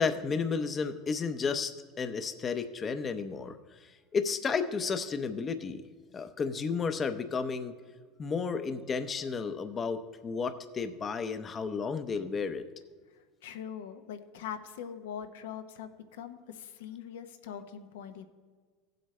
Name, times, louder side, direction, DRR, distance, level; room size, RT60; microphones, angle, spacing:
voice 1, 0.0-5.8 6.1-7.7 8.2-12.7, left 5 dB, 30° left, 9 dB, 0.6 m, -32 dB
voice 2, 13.4-18.2, left 8 dB, 85° left, 8 dB, 0.8 m, -42 dB
15.5 x 7.9 x 3.2 m, 1.5 s
supercardioid pair, 115°, 0 cm